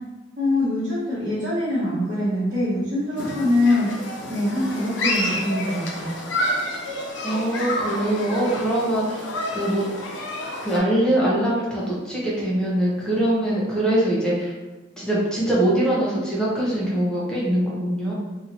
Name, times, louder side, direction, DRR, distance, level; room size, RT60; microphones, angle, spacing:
voice 1, 0.4-3.9 4.3-6.1, left 1 dB, 55° right, -15 dB, 1.2 m, -23 dB
Human group actions, 3.2-10.8, left 1 dB, 90° left, 0.6 m, -29 dB
voice 2, 7.2-9.8 10.6-14.6 15.0-18.1, right 1 dB, 5° left, -7 dB, 0.8 m, -23 dB
2.9 x 2.7 x 2.6 m, 1.1 s
head